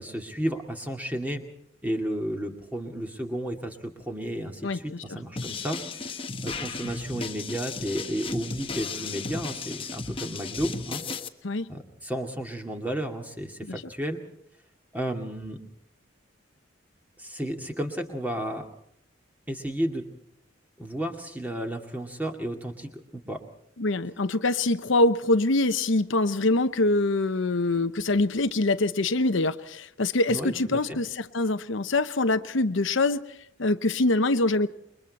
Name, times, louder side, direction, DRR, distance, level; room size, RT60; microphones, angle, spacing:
voice 1, 0.0-1.4 1.8-11.0 11.7-14.2 14.9-15.6 17.2-18.7 19.5-20.1 20.8-23.4 30.3-31.0, equal, 10° right, 3 dB, 2.4 m, -32 dB
voice 2, 4.6-5.2 11.4-11.7 13.7-13.8 23.8-33.2 33.6-34.7, left 2 dB, 70° left, 10 dB, 0.9 m, -24 dB
sound 1, 5.4-11.3, left 4 dB, 25° left, 1.1 m, -35 dB
28.5 x 23.0 x 4.2 m, 0.73 s
head